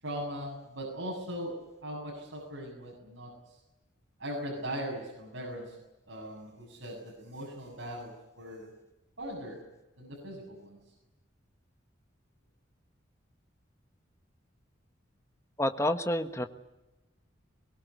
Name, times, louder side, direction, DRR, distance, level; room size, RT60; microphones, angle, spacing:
voice 1, 0.0-1.6 1.8-3.3 4.2-5.8 6.1-8.7 9.2-9.6 10.0-10.8, equal, 80° right, -3 dB, 7.7 m, -39 dB
voice 2, 15.6-16.5, left 1 dB, 15° left, 7 dB, 1.4 m, -28 dB
23.5 x 20.5 x 9.4 m, 1.0 s
head